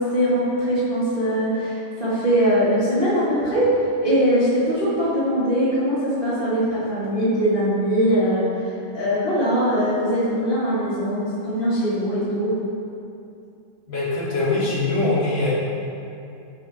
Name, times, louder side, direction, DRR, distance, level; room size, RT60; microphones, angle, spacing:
voice 1, 0.0-3.7 4.0-8.4 8.9-12.5, equal, 25° right, -12 dB, 1.2 m, -21 dB
voice 2, 13.9-15.5, left 2 dB, 25° left, -9 dB, 1.6 m, -22 dB
12.5 x 4.6 x 4.4 m, 2.6 s
omnidirectional pair, 4.4 m